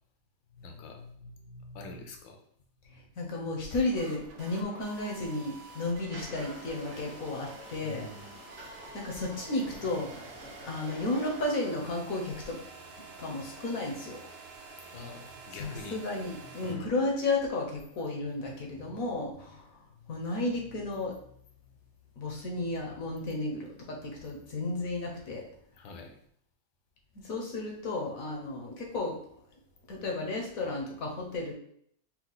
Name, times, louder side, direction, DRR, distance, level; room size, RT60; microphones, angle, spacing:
voice 1, 0.6-1.0 1.7-2.4 7.8-8.4 14.9-16.0 16.6-16.9 25.8-26.2, left 3 dB, 80° left, 3 dB, 1.4 m, -45 dB
voice 2, 1.2-1.8 2.9-8.1 8.9-10.3 10.6-12.6 13.2-14.2 15.6-21.2 22.2-25.4 27.1-29.2 29.9-31.5, left 2 dB, 60° left, 0 dB, 1.0 m, -33 dB
sound 1, 3.7-16.8, right 3 dB, 85° right, 1.5 m, -49 dB
sound 2, 6.1-11.4, right 1 dB, 45° right, 0.9 m, -48 dB
4.4 x 2.4 x 3.9 m, 0.66 s
omnidirectional pair, 2.1 m